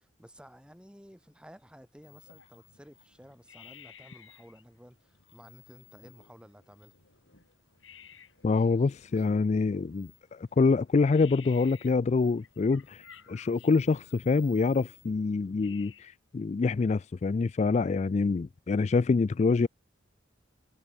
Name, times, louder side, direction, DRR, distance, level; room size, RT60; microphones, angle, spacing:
voice 1, 0.0-6.9 13.4-13.8, equal, 5° right, 8.0 m, -54 dB
sound 1, 2.0-16.0, left 9 dB, 85° left, 4.4 m, -56 dB
voice 2, 8.4-19.7, left 4 dB, 35° left, 0.3 m, -26 dB
head